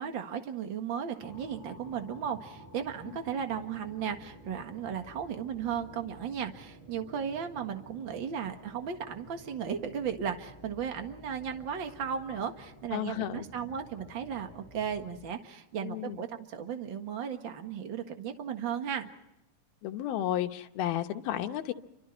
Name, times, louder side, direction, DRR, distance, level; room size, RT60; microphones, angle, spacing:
voice 1, 0.0-19.1, right 7 dB, 45° right, 6 dB, 1.7 m, -35 dB
sound 1, 1.2-15.2, right 1 dB, 65° right, 8.6 m, -52 dB
voice 2, 12.9-13.5 15.8-16.2 19.8-21.7, left 12 dB, 85° left, 7 dB, 2.9 m, -33 dB
29.5 x 25.5 x 4.5 m, 0.87 s
omnidirectional pair, 4.2 m